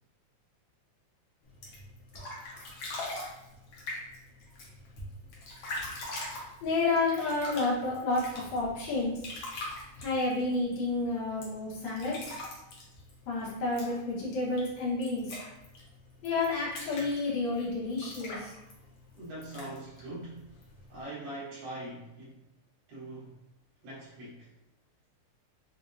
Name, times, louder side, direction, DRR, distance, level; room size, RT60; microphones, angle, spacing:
sound 1, 1.5-21.0, left 2 dB, 85° left, 1.1 m, -44 dB
voice 1, 6.6-9.1 10.0-12.2 13.3-15.3 16.2-18.5, left 3 dB, 65° left, -6 dB, 2.3 m, -30 dB
voice 2, 19.2-20.5 20.9-22.4 22.9-23.4 23.8-24.5, right 1 dB, 65° right, -7 dB, 1.2 m, -42 dB
5.2 x 2.6 x 2.6 m, 0.90 s
omnidirectional pair, 3.7 m